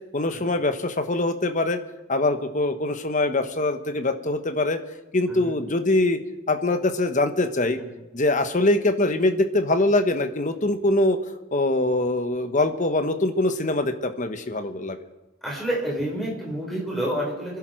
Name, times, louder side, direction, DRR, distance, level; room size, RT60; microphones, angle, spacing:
voice 1, 0.1-1.8 2.1-4.8 5.1-6.2 6.5-7.8 8.1-11.2 11.5-15.0, left 2 dB, 40° left, 8 dB, 1.2 m, -23 dB
voice 2, 15.4-17.6, right 1 dB, ahead, -3 dB, 4.9 m, -29 dB
27.0 x 11.0 x 4.6 m, 1.1 s
head